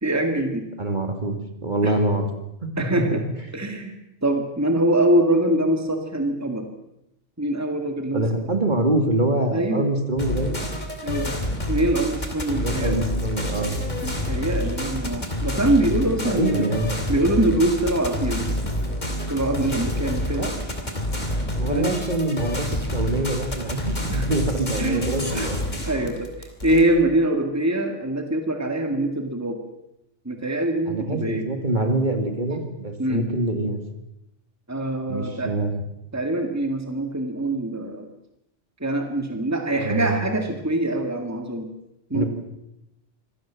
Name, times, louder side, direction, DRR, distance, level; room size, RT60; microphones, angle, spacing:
voice 1, 0.0-0.7 1.8-1.9 2.8-3.2 3.5-3.9 4.2-6.7 7.4-8.2 9.5-9.9 11.0-11.4 11.7-13.0 14.0-16.6 17.1-18.6 19.3-20.5 21.7-22.0 24.1-24.3 24.8-25.1 25.3-25.5 25.9-29.6 30.3-31.4 33.0-33.2 34.7-35.5 36.1-38.1 38.8-41.7 42.1-42.2, right 1 dB, 15° right, 5 dB, 2.1 m, -24 dB
voice 2, 0.8-1.4 1.6-2.3 3.1-3.2 8.1-10.6 12.5-13.8 16.2-16.9 20.4-20.6 21.6-25.6 30.9-33.8 35.1-35.8 39.7-40.2 42.1-42.2, right 2 dB, 40° right, 5 dB, 2.7 m, -25 dB
sound 1, 10.2-26.8, left 1 dB, 35° left, 3.6 m, -28 dB
25.0 x 17.5 x 7.5 m, 0.86 s
omnidirectional pair, 1.2 m